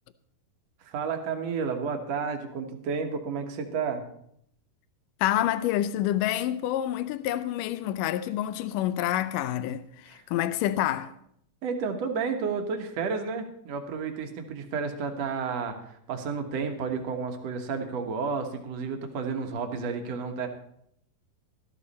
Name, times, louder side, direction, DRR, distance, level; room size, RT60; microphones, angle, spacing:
voice 1, 0.8-4.0 11.6-20.5, right 5 dB, 60° right, 1.9 m, -31 dB
voice 2, 5.2-11.1, left 12 dB, 90° left, 1.9 m, -28 dB
13.5 x 13.5 x 4.2 m
omnidirectional pair, 4.5 m